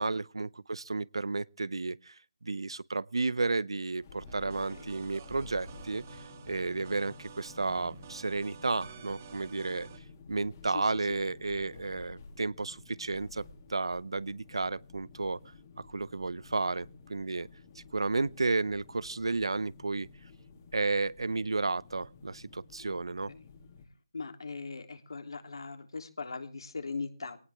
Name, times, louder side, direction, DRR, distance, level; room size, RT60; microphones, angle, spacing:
voice 1, 0.0-9.9 10.3-13.4 13.7-15.4 15.8-17.5 17.8-20.1 20.7-23.3, right 3 dB, 75° right, 0.7 m, -32 dB
sound 1, 4.0-23.9, left 4 dB, 30° left, 2.7 m, -52 dB
sound 2, 4.3-10.0, right 8 dB, 30° right, 1.6 m, -50 dB
voice 2, 4.4-4.9 10.4-10.5 10.7-10.8 11.1-11.2 22.8-23.0 23.3-23.5 24.1-27.4, left 4 dB, 65° left, 3.3 m, -40 dB
20.5 x 18.5 x 3.6 m
figure-of-eight pair, 160°, 3 cm